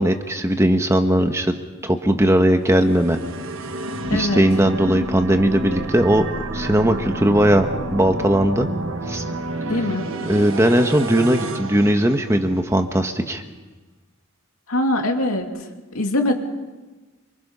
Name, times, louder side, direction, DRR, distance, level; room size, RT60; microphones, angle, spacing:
voice 1, 0.0-1.6 1.8-3.2 4.1-6.2 6.5-8.7 9.1-9.2 10.3-13.4, right 1 dB, 15° right, 6 dB, 1.2 m, -18 dB
sound 1, 2.6-12.8, right 2 dB, 65° right, 1.4 m, -30 dB
voice 2, 4.1-4.4 9.7-10.1 14.7-15.5 15.9-16.3, left 1 dB, 85° left, 3 dB, 2.8 m, -22 dB
27.0 x 25.0 x 5.6 m, 1.2 s
head